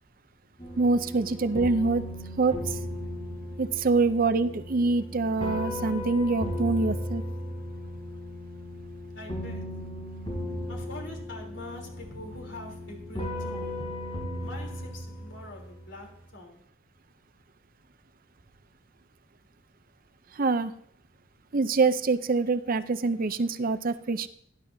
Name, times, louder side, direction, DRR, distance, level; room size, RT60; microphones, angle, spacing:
sound 1, 0.6-16.0, left 1 dB, 25° left, 4.4 m, -36 dB
voice 1, 0.8-2.0 2.4-2.8 3.6-7.2 20.3-20.7 21.5-24.3, right 3 dB, 45° right, 12 dB, 0.6 m, -25 dB
voice 2, 9.1-9.8 10.7-14.0 14.4-16.6, left 2 dB, 60° left, 1 dB, 3.4 m, -44 dB
18.0 x 11.0 x 2.7 m, 0.64 s
head